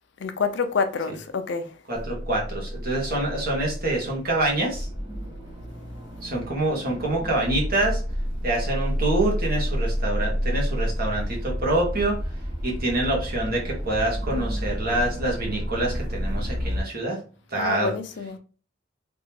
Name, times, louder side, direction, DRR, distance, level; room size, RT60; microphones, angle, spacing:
voice 1, 0.2-1.6 17.6-18.4, left 5 dB, 65° left, 0.5 m, -27 dB
voice 2, 1.9-4.9 6.2-8.0 8.4-12.2 12.6-17.2 17.5-17.9, right 2 dB, 50° right, 1.4 m, -26 dB
sound 1, 2.0-16.8, equal, 30° right, 1.2 m, -30 dB
3.5 x 3.0 x 2.8 m
head